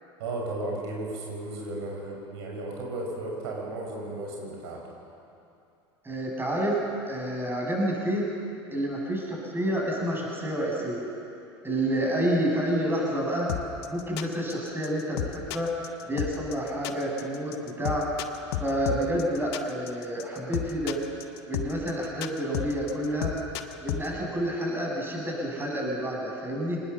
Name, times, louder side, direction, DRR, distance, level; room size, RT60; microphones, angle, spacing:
voice 1, 0.2-4.8, right 2 dB, 65° right, -1 dB, 6.3 m, -34 dB
voice 2, 6.0-6.8 7.1-8.3 8.7-11.0 11.6-13.5 13.9-15.7 16.1-18.1 18.6-21.0 21.5-23.3 23.8-26.8, right 1 dB, 15° right, -1 dB, 7.6 m, -29 dB
sound 1, 13.5-24.1, left 13 dB, 65° left, 1.3 m, -32 dB
26.5 x 20.0 x 7.3 m, 2.6 s
figure-of-eight pair, 80°, 15 cm